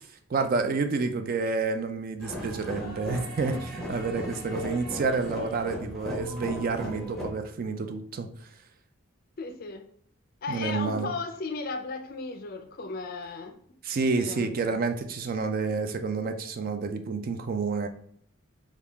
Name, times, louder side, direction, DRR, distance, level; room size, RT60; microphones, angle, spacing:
voice 1, 0.3-8.5 10.5-11.1 13.8-17.9, right 4 dB, 45° right, 7 dB, 0.3 m, -29 dB
sound 1, 2.2-7.3, left 1 dB, ahead, 0.8 m, -37 dB
voice 2, 9.4-9.9 10.4-13.6 14.1-14.5, left 4 dB, 45° left, 8 dB, 0.4 m, -35 dB
3.5 x 2.3 x 3.3 m, 0.64 s
head